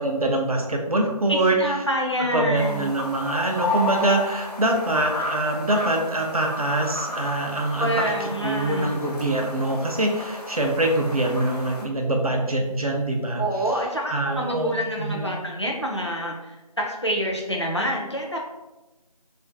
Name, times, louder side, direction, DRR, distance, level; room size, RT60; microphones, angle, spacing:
voice 1, 0.0-1.6 2.3-8.1 8.4-13.7 14.1-15.3, right 1 dB, 65° right, 2 dB, 0.5 m, -24 dB
voice 2, 1.3-2.9 7.8-8.9 13.4-18.4, equal, 45° left, -1 dB, 0.4 m, -27 dB
sound 1, 2.5-11.8, left 2 dB, 75° left, 0.7 m, -32 dB
2.5 x 2.4 x 2.2 m, 1.0 s
figure-of-eight pair, 175°, 20 cm